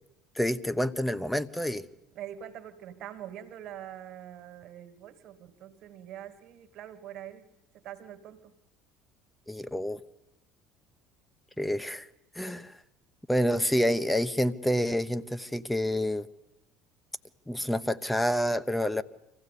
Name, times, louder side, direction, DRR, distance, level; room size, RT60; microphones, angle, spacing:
voice 1, 0.4-1.8 9.5-10.0 11.6-12.1 12.3-12.8 13.3-16.3 17.5-19.0, equal, 5° left, 13 dB, 1.0 m, -28 dB
voice 2, 2.1-7.5 7.8-8.5, right 11 dB, 55° right, 10 dB, 1.9 m, -44 dB
25.0 x 15.5 x 8.5 m, 0.92 s
hypercardioid pair, 70°, 0 cm